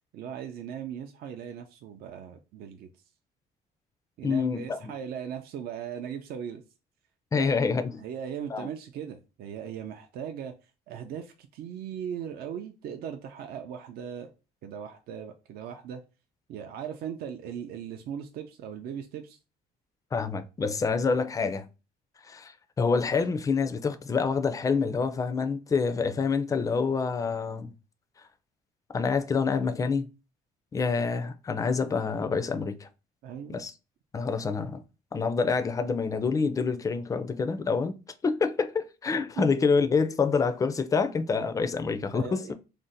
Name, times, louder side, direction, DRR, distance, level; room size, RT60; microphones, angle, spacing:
voice 1, 0.1-2.9 4.2-6.6 7.3-7.5 8.0-10.5 10.9-14.3 14.6-16.0 16.5-19.4 33.2-33.6 39.4-39.5 42.1-42.5, right 8 dB, 65° right, 0.4 m, -38 dB
voice 2, 4.2-4.9 7.3-8.0 8.5-8.7 20.1-21.7 22.2-27.7 28.9-30.1 30.7-32.9 33.5-33.7 34.1-34.8 35.1-38.0 38.2-42.5, left 5 dB, 20° left, 0.3 m, -27 dB
2.6 x 2.1 x 3.8 m
cardioid pair, 110°, 17 cm